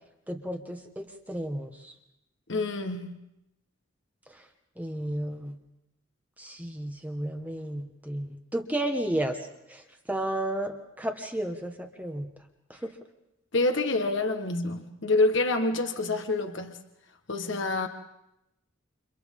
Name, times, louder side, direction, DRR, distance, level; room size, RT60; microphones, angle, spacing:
voice 1, 0.3-1.9 4.8-5.5 6.4-9.4 9.7-9.8 10.1-12.3 12.7-12.9, right 1 dB, 10° right, 1.5 m, -32 dB
voice 2, 2.5-3.1 13.5-16.8 17.3-17.9, left 2 dB, 60° left, 1.4 m, -27 dB
30.0 x 28.0 x 3.8 m
head